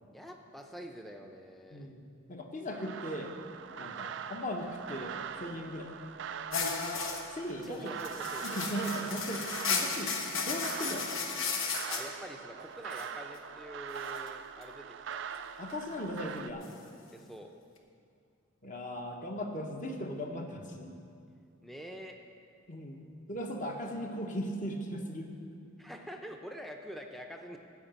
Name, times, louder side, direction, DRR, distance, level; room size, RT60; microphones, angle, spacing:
voice 1, 0.1-1.9 7.6-8.6 11.9-15.3 17.1-17.5 21.6-22.2 25.8-27.6, equal, ahead, 3 dB, 0.6 m, -46 dB
voice 2, 2.3-3.3 3.8-5.9 7.3-7.9 8.4-10.1 10.5-11.1 15.6-16.7 18.6-20.9 22.7-23.0 23.3-25.3, equal, 35° left, 2 dB, 1.0 m, -38 dB
sound 1, 2.7-16.5, right 7 dB, 55° right, 0.4 m, -42 dB
sound 2, 6.5-7.2 7.6-7.7 8.0-12.0 12.9-13.1 14.1-14.3 16.6-16.7, left 5 dB, 70° left, 1.1 m, -34 dB
13.5 x 5.0 x 8.8 m, 2.4 s
head